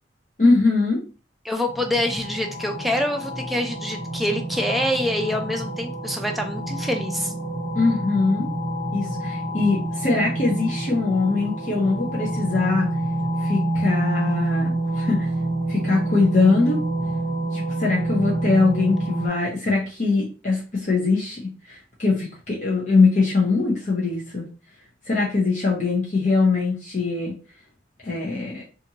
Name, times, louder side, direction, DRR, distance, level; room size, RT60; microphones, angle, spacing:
voice 1, 0.4-1.0 7.7-8.5 8.9-12.9 13.4-15.3 15.7-16.8 17.5-24.5 25.1-27.3 28.0-28.6, left 3 dB, 40° left, -4 dB, 0.7 m, -22 dB
voice 2, 1.4-7.3, equal, ahead, 2 dB, 0.3 m, -26 dB
sound 1, 1.7-19.3, right 1 dB, 60° left, 1.3 m, -27 dB
2.6 x 2.5 x 2.7 m, 0.34 s
head